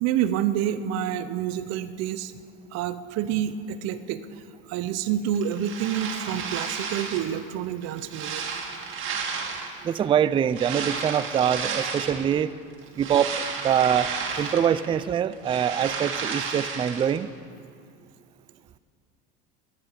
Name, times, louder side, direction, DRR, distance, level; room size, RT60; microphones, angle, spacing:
voice 1, 0.0-2.3 2.7-4.2 4.7-8.4, right 10 dB, 55° right, 12 dB, 0.8 m, -28 dB
sound 1, 5.3-7.4 7.8-9.9 10.5-12.3 12.7-15.0 15.2-17.2, right 5 dB, 40° right, 2.2 m, -32 dB
voice 2, 9.8-12.5 13.0-17.3, right 9 dB, 20° right, 14 dB, 0.3 m, -24 dB
23.5 x 10.0 x 5.0 m, 2.3 s
supercardioid pair, 100°, 30 cm